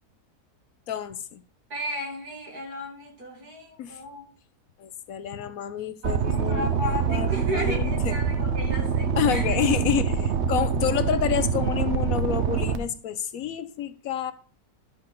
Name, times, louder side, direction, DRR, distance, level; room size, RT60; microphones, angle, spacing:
voice 1, 0.9-1.4 3.8-4.0 4.8-8.1 9.2-14.3, left 9 dB, 70° left, 1.0 m, -29 dB
voice 2, 1.7-4.3 6.0-9.6, left 1 dB, 70° right, 3.1 m, -34 dB
sound 1, 6.0-12.8, right 6 dB, 55° right, 1.0 m, -25 dB
12.0 x 4.0 x 6.7 m
omnidirectional pair, 1.7 m